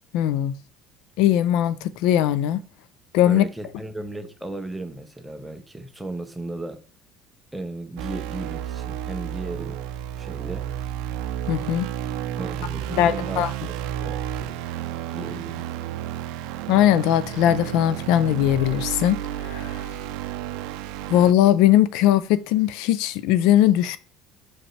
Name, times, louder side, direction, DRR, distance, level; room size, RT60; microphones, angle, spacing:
voice 1, 0.1-0.6 1.2-2.6 3.1-3.4 11.5-11.9 12.9-13.5 16.7-19.9 21.1-24.0, left 12 dB, 75° left, 0.4 m, -20 dB
voice 2, 3.2-6.8 7.5-9.8 10.2-10.7 12.4-14.2 15.1-15.6, right 2 dB, 5° right, 0.7 m, -35 dB
sound 1, 8.0-21.3, right 11 dB, 80° right, 0.4 m, -32 dB
5.9 x 5.1 x 3.2 m
cardioid pair, 145°, 0 cm